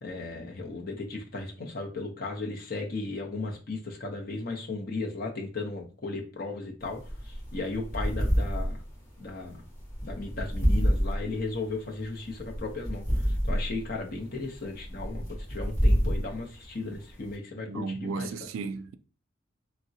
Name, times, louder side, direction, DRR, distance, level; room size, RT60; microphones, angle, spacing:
voice 1, 0.0-8.8 9.2-9.6 10.0-18.5, left 3 dB, 45° left, 0.6 m, -36 dB
sound 1, 6.8-17.4, equal, 15° left, 1.6 m, -29 dB
voice 2, 17.5-18.9, right 4 dB, 80° right, 0.3 m, -35 dB
3.5 x 2.0 x 2.7 m
head